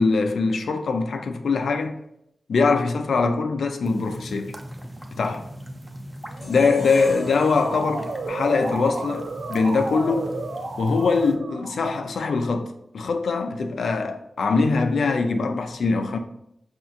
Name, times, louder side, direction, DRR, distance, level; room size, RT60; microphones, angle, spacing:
voice 1, 0.0-2.0 2.5-4.5 5.2-5.4 6.5-10.4 10.8-16.2, left 4 dB, 85° left, 0.4 m, -22 dB
sound 1, 3.8-11.4, equal, 10° right, 0.4 m, -40 dB
Motor vehicle (road) / Siren, 6.3-12.2, right 3 dB, 80° right, 0.5 m, -34 dB
sound 2, 6.4-9.6, left 1 dB, 45° left, 0.9 m, -41 dB
5.6 x 2.7 x 2.4 m
wide cardioid pair, 150°, 0 cm